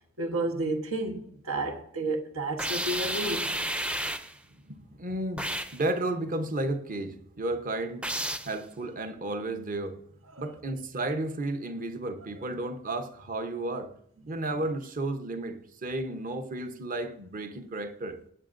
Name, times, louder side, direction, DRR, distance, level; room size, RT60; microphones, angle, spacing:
voice 1, 0.2-3.5 10.3-10.4, right 2 dB, 85° right, 1.4 m, -31 dB
sound 1, 2.6-4.4 5.4-5.8 8.0-8.6, right 1 dB, 5° right, 0.5 m, -31 dB
voice 2, 4.7-8.1 8.4-10.0 10.4-13.9 14.3-18.2, right 2 dB, 40° right, 0.9 m, -33 dB
19.0 x 8.7 x 2.6 m
head